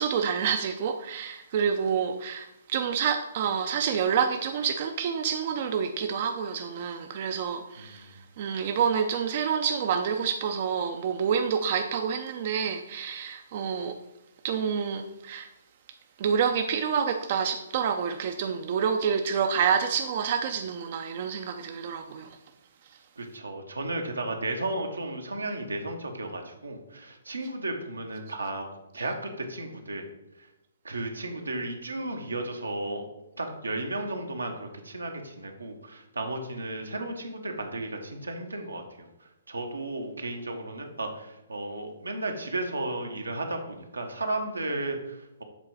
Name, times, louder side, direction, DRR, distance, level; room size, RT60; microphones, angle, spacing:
voice 1, 0.0-14.0 14.4-15.5 16.2-22.4, right 7 dB, 45° right, 0.5 m, -28 dB
voice 2, 7.8-8.2 23.2-28.7 28.9-30.0 30.4-30.5 30.8-33.0 33.4-39.1 39.5-45.4, right 2 dB, 90° right, 1.1 m, -34 dB
7.4 x 3.8 x 4.8 m
figure-of-eight pair, 130°, 0 cm